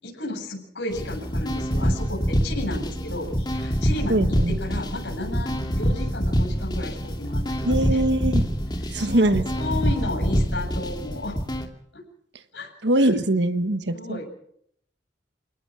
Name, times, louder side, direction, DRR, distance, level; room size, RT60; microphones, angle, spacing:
voice 1, 0.0-8.0 8.8-11.4 11.9-12.0 12.5-13.1 13.9-14.3, left 2 dB, 85° left, 2 dB, 7.7 m, -33 dB
sound 1, 0.9-11.7, equal, 25° left, 2.4 m, -25 dB
voice 2, 4.1-4.6 7.6-8.4 8.9-9.4 12.8-14.2, right 1 dB, 75° right, 10 dB, 1.4 m, -22 dB
28.0 x 18.5 x 6.2 m, 0.71 s
head